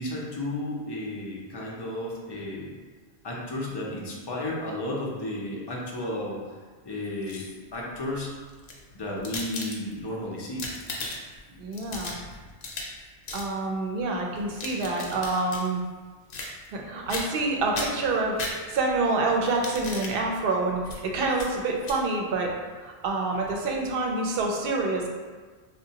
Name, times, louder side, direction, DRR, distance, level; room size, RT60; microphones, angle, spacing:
voice 1, 0.0-2.7 3.2-6.5 6.8-8.3 8.9-10.7, left 1 dB, 45° left, -3 dB, 0.3 m, -33 dB
sound 1, 7.0-7.7 8.5-10.1 10.4-11.4 11.7-13.0 13.3-13.5 14.4-15.7 16.3-16.8 17.1-17.5 17.7-19.0 19.5-20.2 20.8-21.0 21.3-21.5 21.8-22.0, left 2 dB, 65° left, 0.7 m, -36 dB
voice 2, 11.6-12.1 13.3-15.8 16.7-18.4 18.7-22.5 22.8-25.1, right 3 dB, 65° right, 0 dB, 0.7 m, -27 dB
3.7 x 2.1 x 2.7 m, 1.4 s
omnidirectional pair, 1.1 m